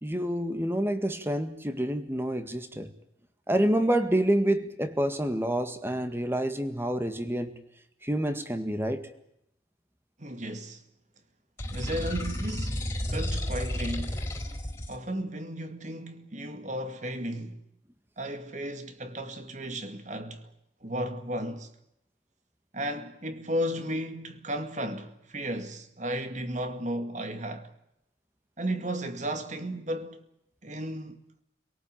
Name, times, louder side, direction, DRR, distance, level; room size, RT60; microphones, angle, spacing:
voice 1, 0.0-2.9 3.5-7.6 8.0-9.1, right 1 dB, 10° right, 1.9 m, -28 dB
voice 2, 10.2-10.8 11.7-12.8 13.1-14.2 14.9-17.6 18.2-20.5 20.8-21.7 22.7-27.7 28.6-30.2 30.6-31.2, right 1 dB, 40° right, 2.3 m, -34 dB
sound 1, 11.6-14.9, left 1 dB, 15° left, 4.1 m, -32 dB
28.0 x 18.0 x 9.2 m
head